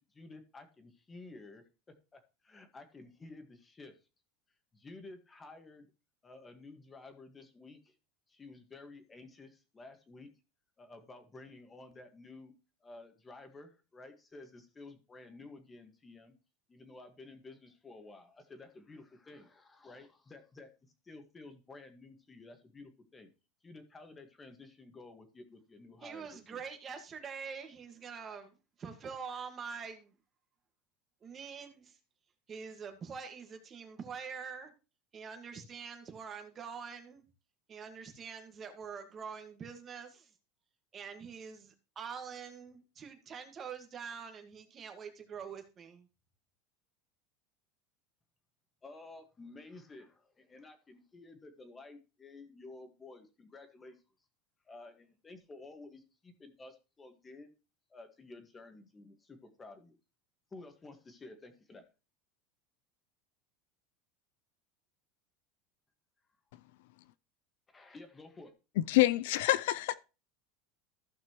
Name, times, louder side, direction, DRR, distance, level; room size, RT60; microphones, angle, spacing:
voice 1, 0.1-1.7 2.1-3.9 4.7-5.9 6.2-7.9 8.3-10.3 10.8-12.5 12.8-16.3 16.7-23.3 23.6-26.6 48.8-54.0 54.6-57.5 57.9-59.9 60.5-61.9 67.7-68.5, left 3 dB, 15° left, 1.7 m, -52 dB
voice 2, 26.0-30.1 31.2-32.0 32.5-34.7 35.1-37.2 37.7-40.3 40.9-46.1, right 6 dB, 30° right, 1.7 m, -45 dB
voice 3, 68.8-69.9, left 17 dB, 75° left, 0.4 m, -27 dB
15.0 x 5.9 x 3.1 m
supercardioid pair, 135°, 0 cm